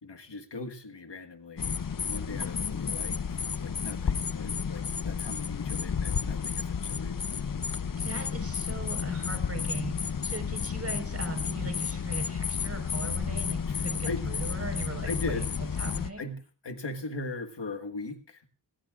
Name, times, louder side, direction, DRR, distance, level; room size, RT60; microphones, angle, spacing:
voice 1, 0.0-7.2 13.7-14.2 15.0-15.5 16.2-18.5, left 3 dB, 75° left, 6 dB, 1.7 m, -39 dB
sound 1, 1.6-16.1, left 6 dB, 50° left, 0.7 m, -32 dB
voice 2, 8.0-15.4 15.8-16.3, right 2 dB, 35° right, 5 dB, 4.7 m, -39 dB
20.0 x 18.5 x 2.5 m, 0.34 s
wide cardioid pair, 65°, 42 cm